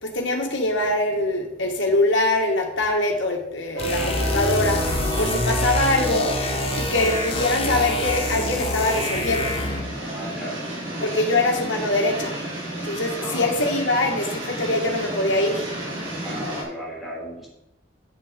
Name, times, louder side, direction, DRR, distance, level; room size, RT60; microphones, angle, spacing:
voice 1, 0.0-4.8 5.2-6.4 6.8-9.5 11.0-12.4 12.8-15.7, left 2 dB, 70° left, 1 dB, 1.9 m, -23 dB
sound 1, 3.7-16.6, right 2 dB, 80° right, 3.5 m, -31 dB
sound 2, 3.8-9.9, left 2 dB, 30° left, 1.2 m, -26 dB
voice 2, 9.9-10.7 11.3-11.5 13.2-13.6 16.2-17.5, equal, ahead, -5 dB, 3.4 m, -35 dB
8.0 x 7.8 x 5.3 m, 0.86 s
head